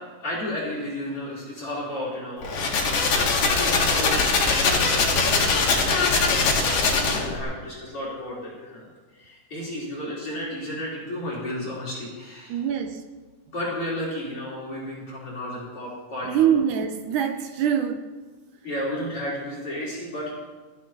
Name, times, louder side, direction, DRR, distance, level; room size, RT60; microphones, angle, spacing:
voice 1, 0.2-12.6 13.5-16.5 18.6-20.3, left 1 dB, 40° left, -5 dB, 4.5 m, -33 dB
sound 1, 2.4-7.4, left 4 dB, 70° left, 3.5 m, -21 dB
voice 2, 12.5-13.0 16.3-18.1, right 9 dB, 80° right, 8 dB, 1.9 m, -24 dB
19.0 x 14.5 x 2.9 m, 1.4 s
omnidirectional pair, 4.2 m